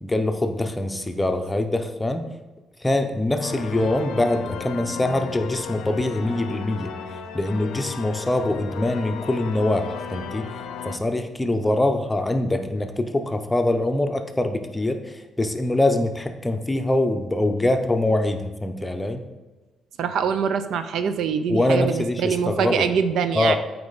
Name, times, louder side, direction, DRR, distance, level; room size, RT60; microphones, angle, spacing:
voice 1, 0.0-2.3 2.8-6.9 7.3-10.5 10.8-19.3 21.5-22.9 23.3-23.6, left 1 dB, 15° left, 6 dB, 0.7 m, -24 dB
sound 1, 3.4-11.0, left 6 dB, 85° left, 0.5 m, -35 dB
voice 2, 20.0-23.6, right 7 dB, 75° right, 10 dB, 0.5 m, -24 dB
8.4 x 4.6 x 4.0 m, 1.2 s
cardioid pair, 90°, 0 cm